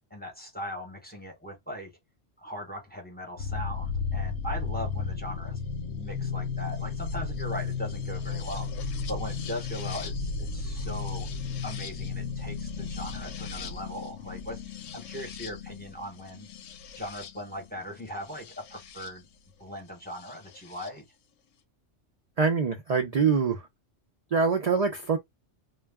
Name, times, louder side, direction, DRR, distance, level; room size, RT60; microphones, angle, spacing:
voice 1, 0.1-1.9 2.4-5.6 5.9-8.7 9.1-11.3 11.6-16.5 17.0-19.3 19.6-21.0, equal, 10° left, 0.7 m, -39 dB
sound 1, 3.4-19.1 20.3-20.9, left 5 dB, 85° left, 0.9 m, -34 dB
voice 2, 22.4-23.7 24.3-25.2, right 5 dB, 60° right, 0.4 m, -24 dB
2.2 x 2.1 x 3.4 m
omnidirectional pair, 1.2 m